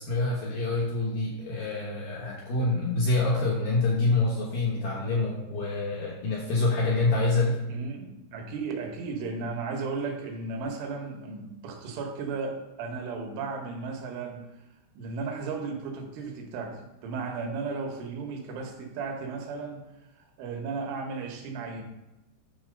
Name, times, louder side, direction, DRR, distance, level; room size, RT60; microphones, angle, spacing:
voice 1, 0.0-7.6, left 3 dB, 70° left, -3 dB, 2.1 m, -26 dB
voice 2, 7.7-14.5 15.0-19.8 20.4-21.8, right 4 dB, 80° right, 2 dB, 3.7 m, -35 dB
10.0 x 4.2 x 6.5 m, 0.99 s
omnidirectional pair, 5.5 m